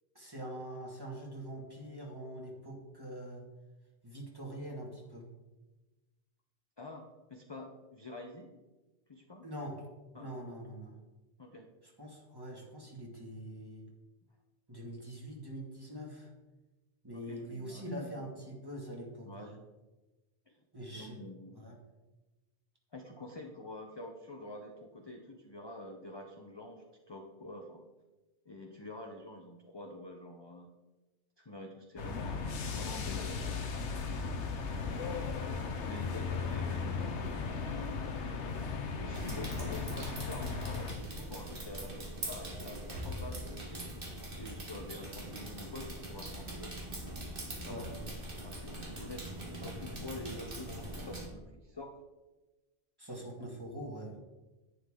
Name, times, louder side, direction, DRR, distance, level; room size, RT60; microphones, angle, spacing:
voice 1, 0.1-3.4 4.0-5.3 9.4-9.8 10.2-11.0 11.8-13.9 14.7-16.3 17.0-19.5 20.7-21.2 21.5-21.8 47.7-48.1 53.0-54.2, right 1 dB, 20° right, -2 dB, 2.3 m, -44 dB
voice 2, 6.8-8.6 9.1-9.5 10.1-10.3 11.4-11.7 17.1-18.3 19.2-19.6 20.5-20.6 20.9-21.6 22.9-27.8 28.4-30.7 31.4-33.7 34.5-35.2 35.5-37.2 38.2-43.9 44.4-46.8 47.5-47.9 48.4-49.3 49.6-51.9 53.4-53.5, left 1 dB, 25° left, 2 dB, 0.8 m, -47 dB
sound 1, 32.0-40.9, left 5 dB, 90° left, 1.2 m, -36 dB
sound 2, 39.1-51.3, right 1 dB, 50° right, 1.9 m, -42 dB
11.0 x 9.7 x 3.8 m, 1.1 s
omnidirectional pair, 1.2 m